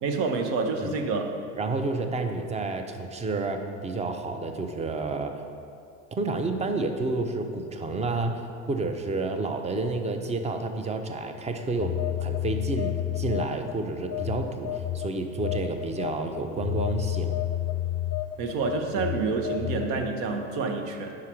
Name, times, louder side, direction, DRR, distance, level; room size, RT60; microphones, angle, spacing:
voice 1, 0.0-1.4 18.4-21.2, right 4 dB, 70° right, 4 dB, 0.9 m, -28 dB
voice 2, 1.6-5.3 6.1-8.4 8.7-14.7 14.9-17.4, right 3 dB, 20° right, 6 dB, 0.5 m, -30 dB
Telephone, 11.8-13.7 14.1-20.0, left 12 dB, 45° left, 0.5 m, -30 dB
4.8 x 4.8 x 5.9 m, 2.5 s
supercardioid pair, 95°, 38 cm